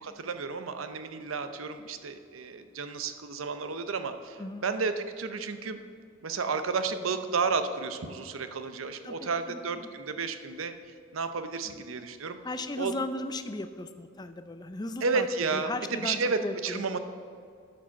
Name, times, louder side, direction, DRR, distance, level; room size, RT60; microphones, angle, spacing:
voice 1, 0.0-5.8 6.2-10.7 11.1-12.4 12.8-12.9 15.0-17.0, right 4 dB, 90° right, 9 dB, 0.7 m, -32 dB
voice 2, 9.0-9.6 11.7-11.8 12.4-15.3 15.5-17.0, left 2 dB, 20° left, 10 dB, 0.5 m, -36 dB
11.5 x 5.2 x 7.0 m, 2.2 s
head